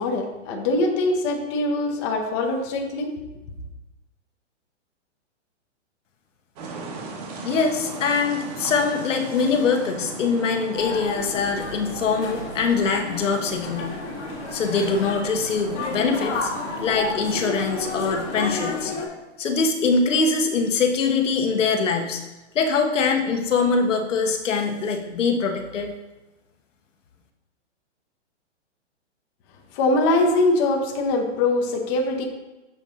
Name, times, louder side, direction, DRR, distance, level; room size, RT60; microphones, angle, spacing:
voice 1, 0.0-3.1 29.7-32.2, left 2 dB, 25° left, 2 dB, 0.7 m, -22 dB
sound 1, 6.6-18.6, right 3 dB, 35° right, 1.1 m, -37 dB
voice 2, 7.4-14.0 14.5-16.5 16.8-18.9 19.4-22.2 22.5-25.9, left 4 dB, 90° left, 4 dB, 1.1 m, -23 dB
sound 2, 10.8-19.1, left 4 dB, 70° left, 1.6 m, -32 dB
6.9 x 4.2 x 3.6 m, 1.1 s
hypercardioid pair, 155°, 36 cm